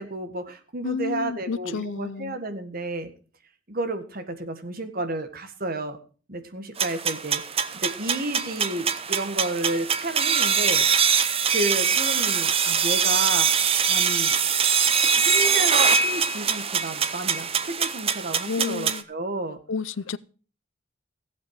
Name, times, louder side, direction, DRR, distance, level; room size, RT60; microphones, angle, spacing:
voice 1, 0.0-3.1 3.7-6.0 6.3-11.1 11.5-13.5 13.9-14.4 14.9-19.6, right 2 dB, 50° right, 1.6 m, -31 dB
voice 2, 0.8-2.4 18.5-19.0 19.7-20.2, left 5 dB, 70° left, 0.6 m, -30 dB
sound 1, 6.8-19.0, right 6 dB, 30° right, 0.8 m, -23 dB
15.5 x 8.4 x 4.7 m
head